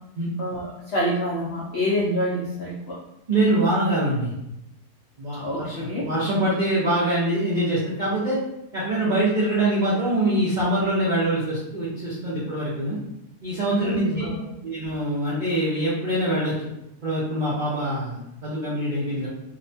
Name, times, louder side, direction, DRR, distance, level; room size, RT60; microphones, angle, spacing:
voice 1, 0.4-3.0 5.4-6.1 13.7-14.4, equal, 75° left, -6 dB, 0.5 m, -27 dB
voice 2, 3.3-4.3 5.2-8.4 8.7-13.0 13.4-14.2 14.6-16.7 17.0-19.3, right 1 dB, 70° right, -9 dB, 0.4 m, -24 dB
2.8 x 2.1 x 2.6 m, 0.86 s
omnidirectional pair, 1.7 m